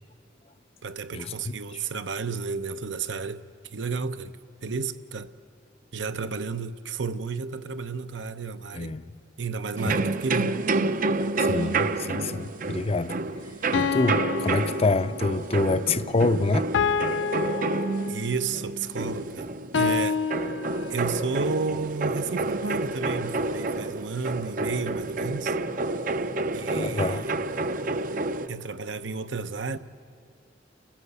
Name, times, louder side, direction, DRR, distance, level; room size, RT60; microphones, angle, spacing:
voice 1, 0.8-3.4 3.7-4.4 4.6-5.3 5.9-8.9 9.4-10.6 18.1-20.2 20.9-25.6 26.5-27.3 28.5-29.8, right 4 dB, 80° right, 0.8 m, -32 dB
voice 2, 8.7-9.1 9.9-10.1 11.5-13.2 13.7-16.7 26.7-27.2, left 3 dB, 30° left, 0.6 m, -26 dB
sound 1, 9.8-28.5, right 3 dB, 45° right, 0.6 m, -29 dB
sound 2, 12.1-12.3 13.7-15.5 16.7-18.4 19.7-21.2, left 6 dB, 90° left, 0.6 m, -28 dB
30.0 x 15.0 x 8.2 m
head